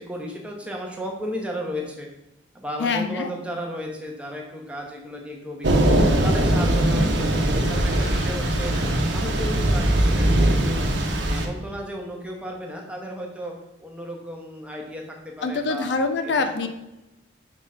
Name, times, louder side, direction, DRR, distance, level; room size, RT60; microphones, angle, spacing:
voice 1, 0.0-2.1 2.5-5.9 6.2-8.7 9.1-10.9 11.2-13.5 13.8-15.9, equal, 5° right, 0 dB, 0.9 m, -34 dB
voice 2, 2.8-3.3 15.4-16.7, left 4 dB, 70° left, 8 dB, 0.5 m, -24 dB
Thunder / Rain, 5.6-11.5, right 1 dB, 70° right, 0.9 m, -21 dB
sound 1, 7.7-11.8, equal, 40° left, 1.9 m, -37 dB
4.9 x 3.6 x 5.4 m, 0.94 s
head